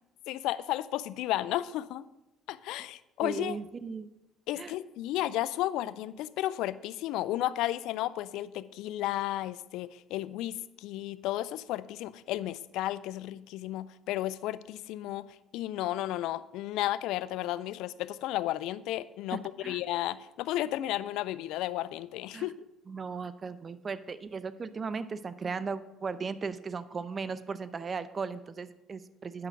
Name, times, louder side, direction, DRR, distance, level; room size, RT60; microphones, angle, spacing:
voice 1, 0.3-2.0 2.5-3.6 4.5-15.3 15.5-22.7, left 14 dB, 80° left, 17 dB, 0.4 m, -33 dB
voice 2, 3.2-4.1 4.6-4.7 19.3-19.8 22.3-22.5 22.9-29.5, right 5 dB, 35° right, 14 dB, 0.6 m, -37 dB
9.2 x 5.8 x 6.0 m, 0.91 s
supercardioid pair, 80°, 0 cm